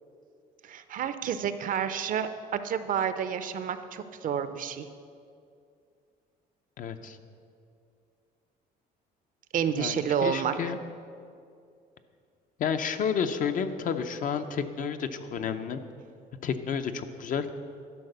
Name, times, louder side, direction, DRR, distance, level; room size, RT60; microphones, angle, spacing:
voice 1, 0.6-4.9 9.5-10.5, right 8 dB, 55° right, 11 dB, 0.6 m, -29 dB
voice 2, 6.8-7.2 9.7-10.8 12.6-15.8 16.4-17.5, left 7 dB, 50° left, 8 dB, 0.6 m, -31 dB
12.0 x 4.9 x 6.7 m, 2.4 s
cardioid pair, 110°, 17 cm